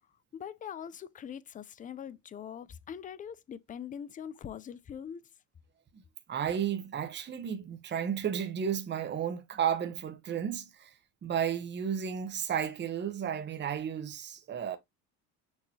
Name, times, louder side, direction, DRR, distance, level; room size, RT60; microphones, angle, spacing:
voice 1, 0.3-5.2, left 8 dB, 25° left, 0.3 m, -42 dB
voice 2, 6.3-10.9 11.2-14.8, right 8 dB, 30° right, 0.8 m, -33 dB
6.3 x 2.7 x 2.7 m
supercardioid pair, 90°, 39 cm